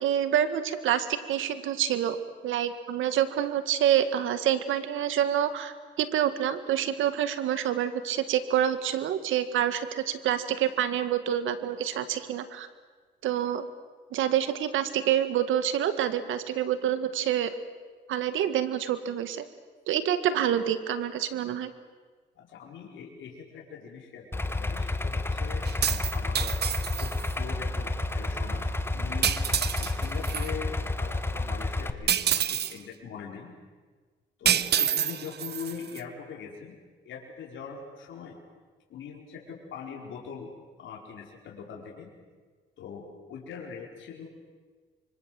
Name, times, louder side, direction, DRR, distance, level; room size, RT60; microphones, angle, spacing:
voice 1, 0.0-2.2 2.4-12.7 13.2-13.7 14.1-17.5 18.1-19.4 19.9-21.7, right 10 dB, 85° right, 11 dB, 1.9 m, -27 dB
voice 2, 22.3-26.5 27.0-29.4 29.8-33.5 34.4-36.8 37.0-38.4 38.9-40.5 40.8-42.1 42.8-44.3, left 6 dB, 75° left, -1 dB, 4.7 m, -42 dB
Idling, 24.3-31.9, left 2 dB, 10° left, 1.6 m, -30 dB
sound 1, 25.7-27.3 29.2-30.5 32.1-32.8 34.5-36.0, right 9 dB, 55° right, 1.0 m, -27 dB
26.0 x 24.5 x 7.8 m, 1.4 s
cardioid pair, 90°, 20 cm